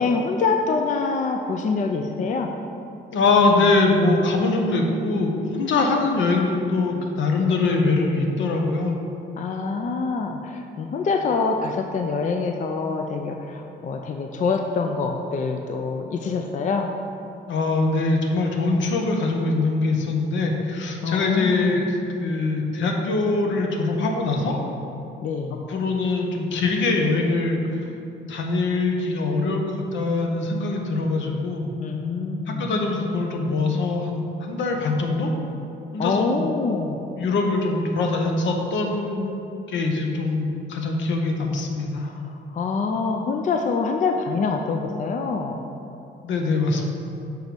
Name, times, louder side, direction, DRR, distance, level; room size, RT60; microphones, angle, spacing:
voice 1, 0.0-2.5 9.4-16.9 21.0-21.8 25.2-25.6 31.8-32.7 36.0-37.0 42.0-42.1 42.5-45.6, left 4 dB, 40° left, 4 dB, 0.4 m, -25 dB
voice 2, 3.1-9.0 17.5-24.6 25.7-27.8 28.3-31.7 32.5-35.3 35.9-36.5 37.2-39.3 39.7-42.1 46.2-46.9, left 3 dB, 70° left, 2 dB, 0.8 m, -23 dB
6.6 x 3.1 x 5.2 m, 2.7 s
cardioid pair, 90°, 20 cm